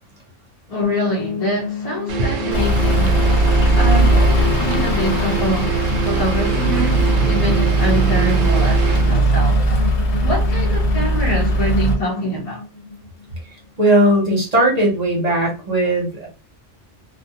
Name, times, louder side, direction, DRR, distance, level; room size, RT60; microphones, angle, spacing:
voice 1, 0.7-3.2 3.7-5.7 6.0-9.6 10.2-12.6, equal, 35° left, 0.7 m, -24 dB
sound 1, 0.8-13.7, left 4 dB, 85° left, 1.1 m, -30 dB
sound 2, 2.1-9.2, right 6 dB, 65° right, 0.8 m, -26 dB
Truck / Idling, 2.5-12.0, right 1 dB, 60° left, 1.0 m, -18 dB
voice 2, 13.8-16.3, right 1 dB, 35° right, 0.8 m, -17 dB
2.3 x 2.3 x 2.8 m
omnidirectional pair, 1.3 m